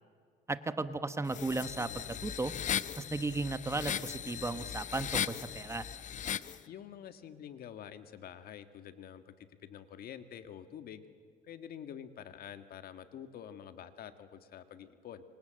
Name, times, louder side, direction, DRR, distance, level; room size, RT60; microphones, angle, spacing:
voice 1, 0.5-2.5 3.0-5.9, right 3 dB, 15° right, 11 dB, 1.1 m, -35 dB
sound 1, 1.3-6.6, left 9 dB, 45° left, 0.8 m, -37 dB
voice 2, 6.7-11.0 11.4-15.2, left 9 dB, 65° left, 9 dB, 1.9 m, -47 dB
27.5 x 25.5 x 7.8 m, 2.1 s
cardioid pair, 110°, 17 cm